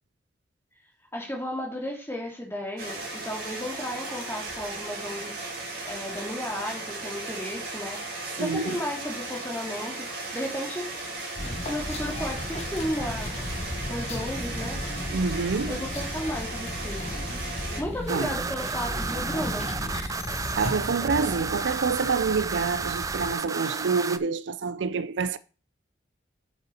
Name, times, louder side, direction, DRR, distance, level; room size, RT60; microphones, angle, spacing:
voice 1, 1.1-8.0 8.4-10.9 11.7-13.5 13.9-15.2 15.7-17.2 17.8-19.7, equal, 15° left, 2.6 m, -34 dB
sound 1, 2.8-17.8, right 2 dB, 55° right, 3.3 m, -36 dB
voice 2, 8.4-8.8 15.1-15.8 18.1-18.3 20.6-25.4, right 4 dB, 75° right, 0.5 m, -27 dB
sound 2, 11.4-23.3, left 1 dB, 35° left, 1.1 m, -35 dB
sound 3, 18.1-24.2, right 5 dB, 20° right, 0.4 m, -32 dB
7.6 x 6.6 x 4.3 m
head